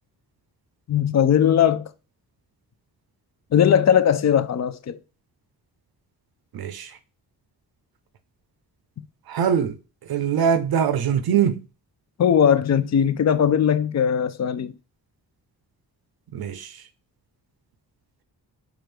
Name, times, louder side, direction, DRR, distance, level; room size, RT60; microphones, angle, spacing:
voice 1, 0.9-1.9 3.5-5.0 9.0-9.1 12.2-14.7, left 8 dB, 40° left, 0.5 m, -19 dB
voice 2, 6.5-7.0 9.3-9.8 10.0-11.6 16.3-16.8, right 8 dB, 60° right, 0.5 m, -23 dB
4.4 x 2.5 x 3.2 m
cardioid pair, 55°, 41 cm